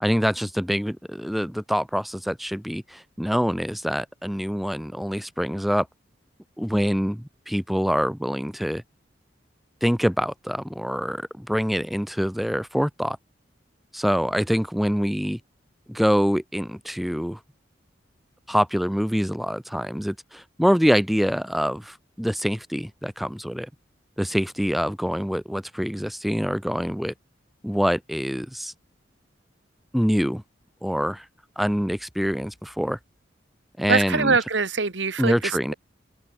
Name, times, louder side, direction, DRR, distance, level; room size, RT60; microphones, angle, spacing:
voice 1, 0.0-5.9 6.6-8.8 9.8-13.2 13.9-15.4 15.9-17.4 18.5-23.7 24.2-27.1 27.6-28.7 29.9-30.4 30.8-31.3 31.6-33.0 33.8-34.4 35.2-35.7, equal, ahead, 0.3 m, -25 dB
voice 2, 33.9-35.7, right 4 dB, 75° right, 1.6 m, -23 dB
open air
head